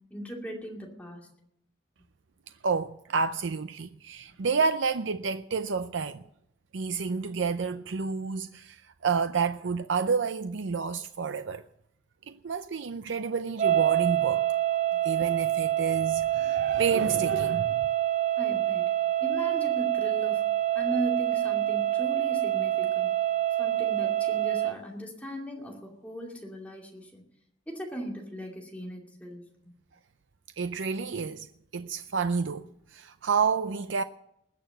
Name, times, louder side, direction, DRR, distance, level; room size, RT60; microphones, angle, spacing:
voice 1, 0.1-1.3 18.4-18.8 19.2-20.5 20.7-23.1 23.6-27.2 27.7-29.7, right 1 dB, 10° left, 2.5 m, -38 dB
voice 2, 2.6-6.2 6.7-11.6 12.3-14.4 15.0-17.8 30.6-31.5 31.7-34.0, right 5 dB, 85° right, 0.5 m, -29 dB
sound 1, 13.6-24.8, right 13 dB, 35° right, 0.5 m, -26 dB
20.5 x 6.9 x 7.9 m
head